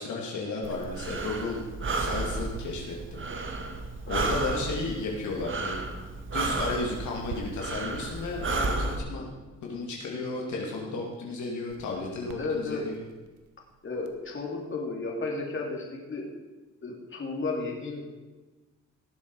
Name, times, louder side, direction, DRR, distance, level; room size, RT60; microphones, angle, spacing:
voice 1, 0.0-1.6 2.0-3.2 4.0-5.8 6.3-9.3 9.6-13.0, left 3 dB, 70° left, -2 dB, 2.6 m, -33 dB
Breathing, 0.6-9.0, right 3 dB, 40° right, 1.7 m, -32 dB
voice 2, 4.1-4.4 12.3-12.8 13.8-16.2 16.8-18.0, left 3 dB, 40° left, -1 dB, 3.1 m, -33 dB
sound 1, 5.9-6.2 7.2-7.4 8.5-8.8 11.6-14.4, right 8 dB, 85° right, 1.3 m, -48 dB
18.5 x 7.5 x 4.8 m, 1.2 s
cardioid pair, 90°, 30 cm